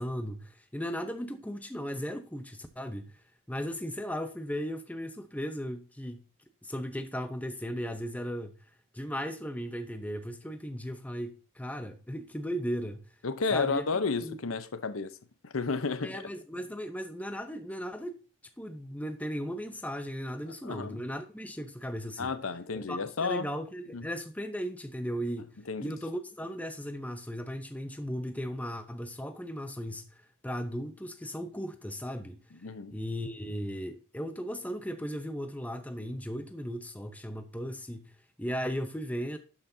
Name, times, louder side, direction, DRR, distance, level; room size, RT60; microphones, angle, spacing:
voice 1, 0.0-6.3 6.6-8.7 8.9-13.2 13.5-13.8 14.2-14.4 16.0-18.2 18.6-22.3 22.9-32.4 32.9-39.4, equal, 5° left, 0.7 m, -36 dB
voice 2, 13.2-15.2 15.4-16.2 20.6-21.0 22.2-23.5 23.9-24.0 25.7-25.9 32.6-32.9, left 4 dB, 75° left, 0.8 m, -32 dB
12.0 x 5.9 x 2.7 m
head